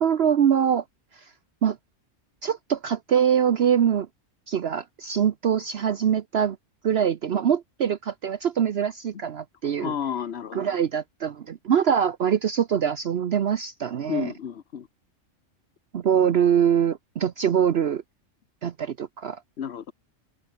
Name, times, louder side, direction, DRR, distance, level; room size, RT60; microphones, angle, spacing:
voice 1, 0.0-0.8 1.6-1.8 2.4-4.1 4.5-6.6 6.8-9.9 10.5-14.3 15.9-18.0 18.6-19.4, right 8 dB, 55° right, 1.0 m, -23 dB
voice 2, 9.8-10.7 14.1-14.9 19.6-19.9, left 8 dB, 60° left, 1.3 m, -31 dB
omnidirectional pair, 1.3 m